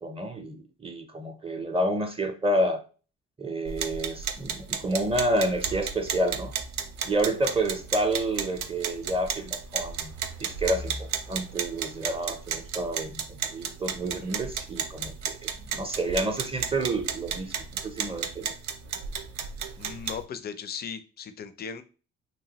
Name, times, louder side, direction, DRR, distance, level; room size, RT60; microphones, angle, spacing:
voice 1, 0.0-2.8 3.4-6.5 7.0-10.1 10.4-18.5, right 1 dB, 20° right, 5 dB, 0.5 m, -29 dB
sound 1, 3.7-20.2, right 7 dB, 65° right, 0.5 m, -34 dB
voice 2, 19.8-21.8, left 7 dB, 35° left, 11 dB, 0.4 m, -37 dB
2.9 x 2.3 x 2.8 m, 0.36 s
cardioid pair, 90°, 30 cm